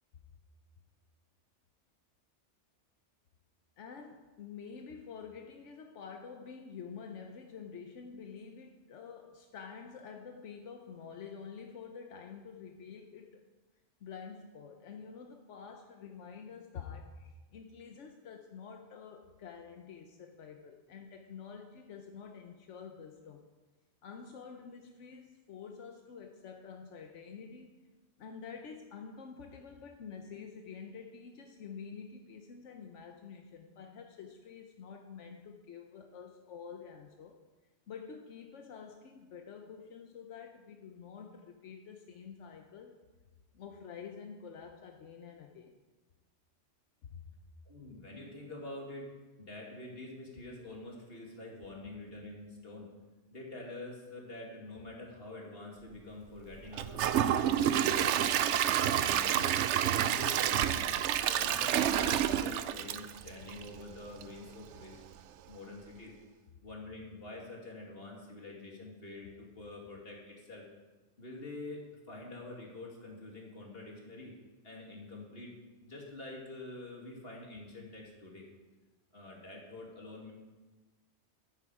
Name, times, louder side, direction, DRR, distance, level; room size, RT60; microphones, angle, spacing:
voice 1, 3.8-13.4 14.0-23.4 24.0-27.7 28.2-37.4 37.9-43.0 43.5-45.8 47.0-47.2, left 6 dB, 85° left, 4 dB, 1.2 m, -48 dB
voice 2, 47.7-49.1 49.4-52.9 53.3-58.6 58.9-59.5 59.8-60.9 61.2-65.0 65.5-66.1 66.6-70.6 71.2-71.8 72.1-74.3 74.6-75.6 75.8-78.5 79.1-80.3, left 2 dB, 55° left, -2 dB, 2.6 m, -46 dB
Gurgling / Toilet flush / Trickle dribble, 56.7-63.8 64.2-64.3 64.8-64.9, right 10 dB, 75° right, 0.9 m, -29 dB
12.5 x 9.6 x 4.9 m, 1.2 s
omnidirectional pair, 1.2 m